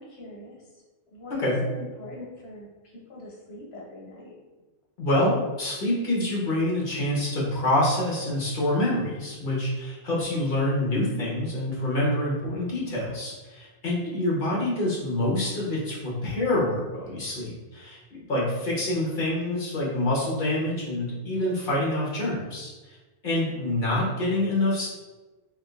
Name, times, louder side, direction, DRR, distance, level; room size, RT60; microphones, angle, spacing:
voice 1, 0.0-4.4 14.0-14.3 23.4-23.8, left 1 dB, 75° left, -4 dB, 1.1 m, -43 dB
voice 2, 5.0-23.0 23.2-24.9, left 1 dB, 55° left, -5 dB, 1.2 m, -26 dB
3.6 x 3.1 x 2.4 m, 1.2 s
omnidirectional pair, 1.0 m